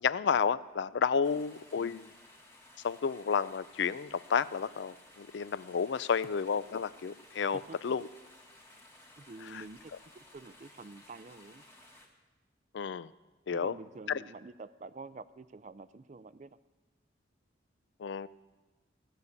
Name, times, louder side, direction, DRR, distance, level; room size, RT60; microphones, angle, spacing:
voice 1, 0.0-2.1 2.8-8.1 9.4-9.6 9.9-10.0 12.7-13.1 13.5-13.8 14.1-14.2 18.0-18.3, left 6 dB, 70° left, 18 dB, 0.4 m, -31 dB
sound 1, 1.2-12.1, left 1 dB, 15° left, 1.5 m, -57 dB
voice 2, 9.2-9.9 10.3-11.6 13.5-16.6, right 3 dB, 40° right, 15 dB, 0.4 m, -48 dB
16.5 x 6.7 x 8.3 m, 1.2 s
head